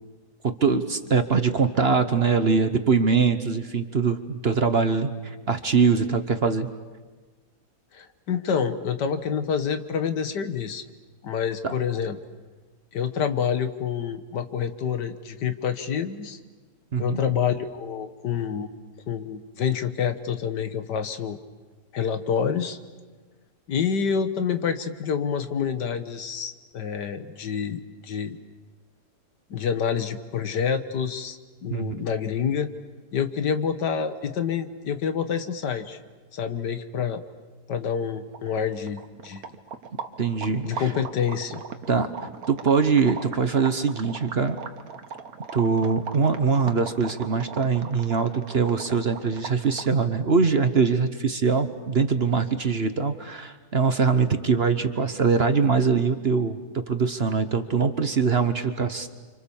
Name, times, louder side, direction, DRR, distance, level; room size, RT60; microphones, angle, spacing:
voice 1, 0.4-6.7 11.6-11.7 16.9-17.2 31.7-32.0 40.2-40.9 41.9-44.6 45.5-59.1, right 5 dB, 40° right, 9 dB, 1.1 m, -23 dB
voice 2, 7.9-10.8 11.2-12.2 12.9-16.4 17.0-18.7 19.1-21.4 21.9-22.8 23.7-28.4 29.5-32.7 33.1-36.0 36.3-37.2 37.7-39.5 40.6-41.6, left 7 dB, 80° left, 9 dB, 1.9 m, -27 dB
sound 1, 38.3-50.0, right 6 dB, 60° right, 1.6 m, -38 dB
30.0 x 26.0 x 7.2 m, 1.3 s
omnidirectional pair, 1.8 m